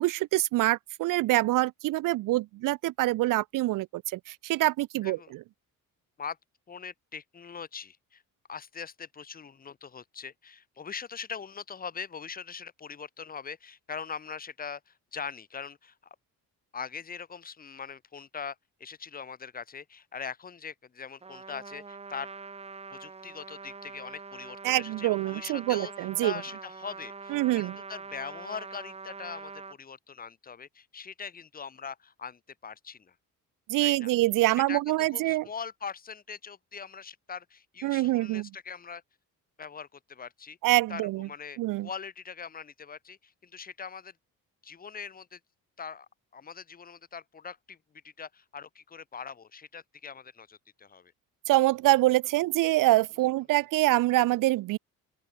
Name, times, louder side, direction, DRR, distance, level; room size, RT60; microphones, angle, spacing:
voice 1, 0.0-5.4 24.6-26.3 27.3-27.8 33.7-35.5 37.8-38.5 40.6-41.3 41.6-41.9 51.5-54.8, right 18 dB, 65° right, 0.5 m, -25 dB
voice 2, 6.7-8.2 8.5-15.9 16.7-22.3 22.9-25.9 26.2-33.1 33.8-34.1 34.7-34.8 35.1-39.0 39.6-40.6 40.9-44.1 44.6-45.4 45.8-47.8 48.0-51.1, left 6 dB, 25° left, 1.3 m, -42 dB
Trumpet, 21.2-29.8, right 4 dB, 20° right, 1.6 m, -44 dB
open air
cardioid pair, 165°, 34 cm